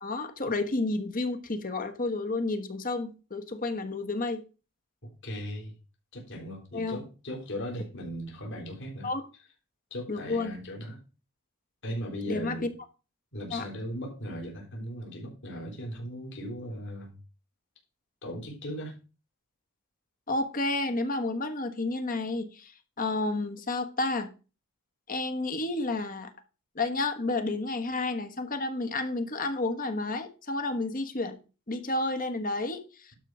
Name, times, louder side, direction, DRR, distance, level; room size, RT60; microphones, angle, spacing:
voice 1, 0.0-4.4 6.7-7.0 9.0-9.3 10.1-10.6 12.3-12.7 13.5-13.7 20.3-22.7 23.0-24.3 25.1-26.3 26.7-31.4 31.7-33.1, left 2 dB, 40° left, 1.3 m, -31 dB
voice 2, 5.0-5.7 6.1-9.1 9.9-11.0 11.8-12.7 13.3-17.2 18.2-18.9, equal, 60° left, 3.8 m, -38 dB
11.5 x 4.5 x 6.2 m
head